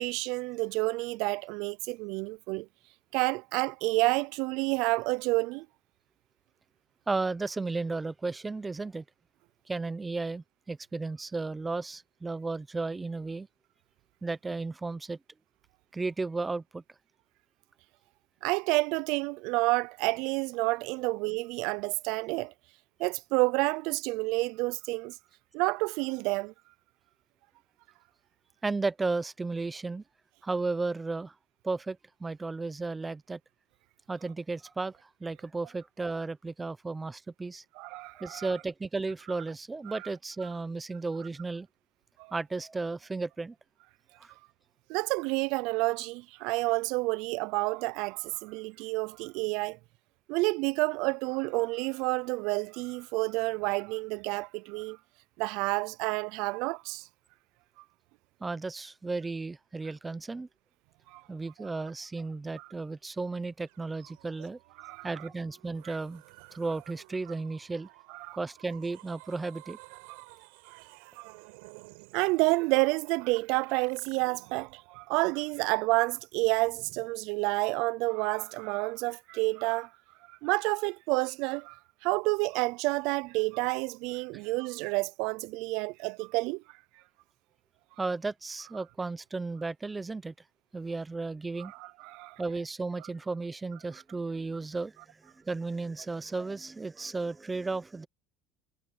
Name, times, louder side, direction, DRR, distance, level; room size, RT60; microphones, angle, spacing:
voice 1, 0.0-2.7 3.1-5.7 18.4-22.5 23.0-25.2 25.5-26.5 37.8-38.5 39.9-40.0 42.2-42.3 44.9-49.8 50.3-55.0 55.4-57.1 61.1-61.2 62.6-62.7 64.8-65.1 65.8-65.9 68.1-68.4 72.1-79.9 80.3-86.6 91.6-92.4, right 25 dB, 60° right, 0.3 m, -29 dB
voice 2, 7.1-9.0 9.7-13.5 14.2-15.2 15.9-16.8 28.6-30.0 30.4-31.3 31.6-33.4 34.1-37.6 38.2-41.7 42.3-43.6 44.2-44.3 58.4-60.5 61.3-64.6 65.0-66.2 66.5-67.9 68.3-69.8 88.0-90.3 90.7-91.7 92.4-98.1, right 3 dB, 10° right, 0.7 m, -34 dB
sound 1, 63.7-77.4, right 28 dB, 85° right, 4.3 m, -54 dB
cardioid pair, 165°, 0 cm